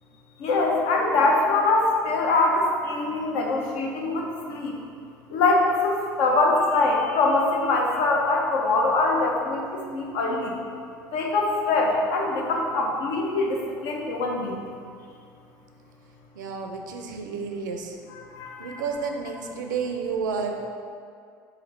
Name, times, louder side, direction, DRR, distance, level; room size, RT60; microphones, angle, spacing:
voice 1, 0.4-4.7 5.3-10.5 11.1-14.7 18.1-18.9, left 2 dB, 70° left, 0 dB, 0.6 m, -23 dB
voice 2, 16.4-18.0 18.6-20.6, right 5 dB, 85° right, 3 dB, 0.4 m, -31 dB
2.9 x 2.8 x 3.9 m, 2.3 s
hypercardioid pair, 75°, 10 cm